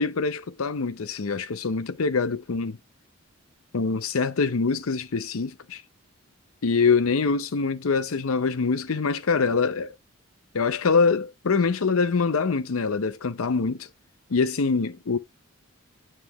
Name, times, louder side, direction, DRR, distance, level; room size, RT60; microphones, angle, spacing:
voice 1, 0.0-2.8 3.7-5.8 6.6-9.9 10.5-13.9 14.3-15.2, left 4 dB, 80° left, 0.6 m, -24 dB
9.1 x 3.3 x 3.5 m
head